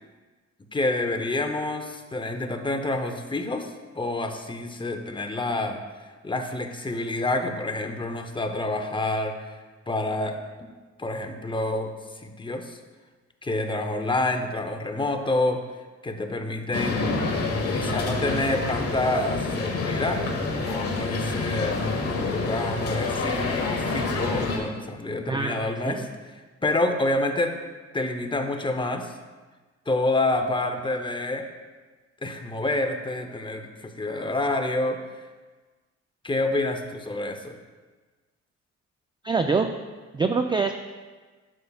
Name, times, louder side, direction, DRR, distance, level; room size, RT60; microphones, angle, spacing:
voice 1, 0.7-3.7 3.9-9.6 9.9-10.4 11.0-12.8 13.4-15.6 16.0-17.1 17.7-20.2 20.7-21.8 22.3-26.1 26.6-27.5 27.9-29.1 29.9-31.4 32.2-35.0 36.2-37.6, left 2 dB, 15° left, 6 dB, 0.7 m, -28 dB
sound 1, 16.7-24.6, left 3 dB, 50° left, 1.4 m, -27 dB
voice 2, 25.3-25.6 25.8-26.1 39.2-39.7 40.1-40.7, right 4 dB, 15° right, 6 dB, 0.3 m, -24 dB
11.0 x 6.8 x 2.4 m, 1.3 s
cardioid pair, 90°, 30 cm